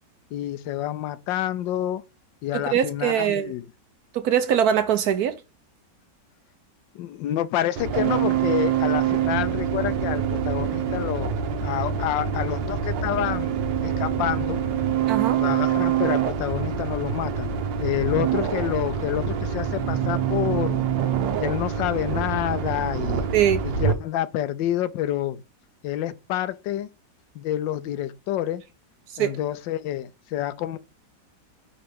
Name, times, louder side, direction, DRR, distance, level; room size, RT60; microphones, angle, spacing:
voice 1, 0.3-2.0 2.4-3.6 6.9-14.6 15.4-17.5 17.8-20.8 21.4-23.3 23.6-25.4 25.8-26.9 27.3-28.6 29.2-30.8, left 12 dB, 85° left, 1.3 m, -28 dB
voice 2, 2.5-3.5 4.1-5.4 15.1-15.4 23.3-23.6 29.2-29.4, right 9 dB, 70° right, 1.0 m, -22 dB
sound 1, 7.8-23.9, right 8 dB, 85° right, 1.6 m, -25 dB
5.6 x 3.3 x 5.2 m
omnidirectional pair, 2.0 m